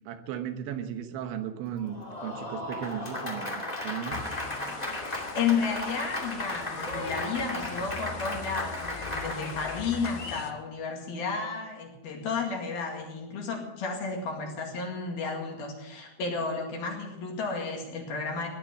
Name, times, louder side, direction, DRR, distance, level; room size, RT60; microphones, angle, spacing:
voice 1, 0.1-4.3, right 9 dB, 80° right, 8 dB, 3.3 m, -36 dB
Applause, 1.8-10.5, left 1 dB, 20° left, 1.0 m, -35 dB
sound 1, 4.1-10.5, left 8 dB, 75° left, 3.1 m, -42 dB
voice 2, 5.0-18.5, left 5 dB, 60° left, 1 dB, 3.6 m, -32 dB
17.0 x 10.5 x 7.2 m, 1.0 s
omnidirectional pair, 5.5 m